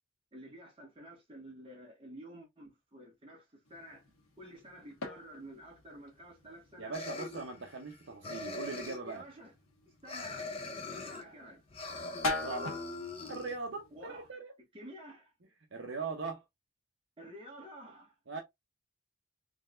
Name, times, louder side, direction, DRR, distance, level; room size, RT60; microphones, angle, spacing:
voice 1, 0.3-4.0 4.4-7.0 9.0-9.5 10.0-10.5 10.9-11.6 13.9-14.3 14.7-15.3 17.2-18.1, equal, 25° right, 1.5 m, -50 dB
sound 1, 3.6-14.3, left 2 dB, 80° left, 1.3 m, -44 dB
voice 2, 6.8-9.2 12.4-12.8 13.3-14.6 15.7-16.4 18.3-18.4, right 4 dB, 60° right, 0.7 m, -40 dB
sound 2, 6.9-7.9 8.2-9.2 10.1-11.2 11.7-13.5, left 2 dB, 25° left, 0.5 m, -41 dB
3.8 x 3.2 x 2.5 m
head